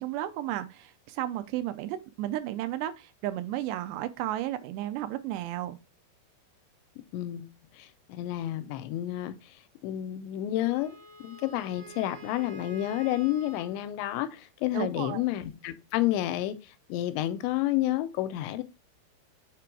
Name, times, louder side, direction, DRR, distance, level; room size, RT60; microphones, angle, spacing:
voice 1, 0.0-5.8 14.7-15.2, right 13 dB, 85° right, 2.7 m, -33 dB
voice 2, 7.1-7.5 7.7-9.4 9.8-11.0 11.2-16.6 16.9-18.6, left 14 dB, 85° left, 2.9 m, -30 dB
Wind instrument woodwind instrument, 10.6-13.8, right 3 dB, 50° right, 2.6 m, -48 dB
6.6 x 3.7 x 4.6 m
omnidirectional pair, 5.0 m